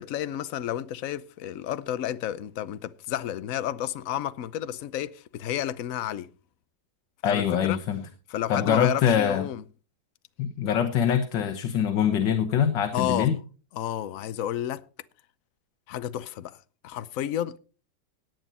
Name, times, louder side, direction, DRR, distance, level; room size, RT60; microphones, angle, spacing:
voice 1, 0.0-6.3 7.2-7.8 8.3-9.6 12.9-13.3 13.7-14.8 15.9-16.6 16.8-17.6, left 11 dB, 60° left, 1.0 m, -31 dB
voice 2, 7.2-8.0 8.5-9.5 10.4-13.4, left 8 dB, 85° left, 1.8 m, -24 dB
17.5 x 9.2 x 4.2 m
omnidirectional pair, 1.9 m